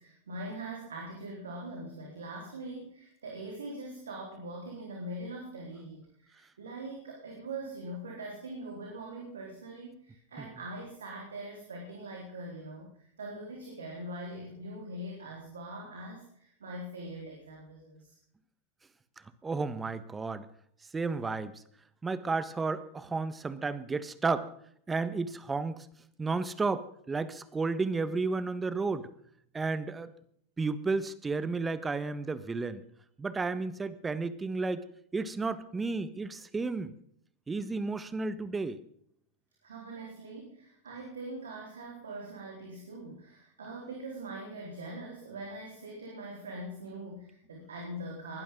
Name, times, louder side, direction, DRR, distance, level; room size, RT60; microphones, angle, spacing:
voice 1, 0.0-18.1 39.6-48.4, right 1 dB, 85° right, -1 dB, 4.2 m, -42 dB
voice 2, 19.4-20.5 20.9-21.6 22.0-24.5 24.9-25.9 26.2-29.1 29.5-30.1 30.6-32.8 33.2-34.9 35.1-36.9 37.5-38.8, right 4 dB, 15° right, 15 dB, 1.4 m, -32 dB
20.5 x 12.0 x 3.9 m, 0.66 s
hypercardioid pair, 95°, 0 cm